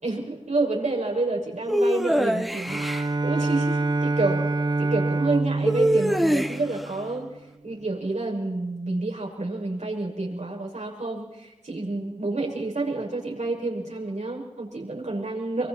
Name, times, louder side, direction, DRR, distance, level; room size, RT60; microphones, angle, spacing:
voice 1, 0.0-4.5 4.8-7.4 7.6-15.7, right 2 dB, 75° right, -1 dB, 6.4 m, -29 dB
sound 1, 1.7-3.1 5.6-6.8, equal, ahead, 2.2 m, -23 dB
Bowed string instrument, 2.7-7.3, right 3 dB, 35° right, 0.9 m, -26 dB
25.0 x 25.0 x 4.3 m, 0.98 s
wide cardioid pair, 55°, 12 cm